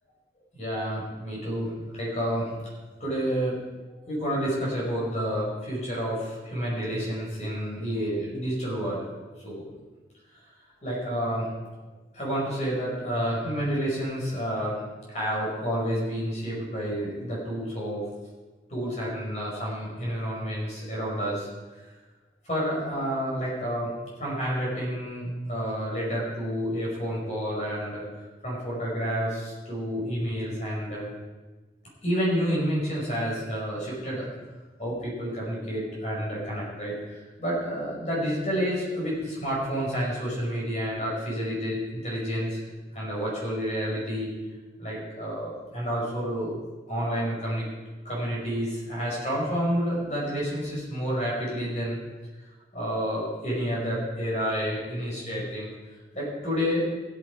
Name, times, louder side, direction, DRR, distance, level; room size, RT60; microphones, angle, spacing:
voice 1, 0.5-2.5 3.0-3.6 4.1-9.0 9.4-9.7 10.8-11.5 12.1-14.8 15.1-18.0 18.7-21.5 22.5-23.9 24.2-28.0 28.4-31.1 32.0-34.3 34.8-42.6 42.9-44.3 44.8-46.5 46.9-47.7 48.1-52.0 52.7-55.7 56.1-56.9, equal, 40° left, -5 dB, 5.3 m, -29 dB
16.0 x 9.0 x 4.8 m, 1.2 s
head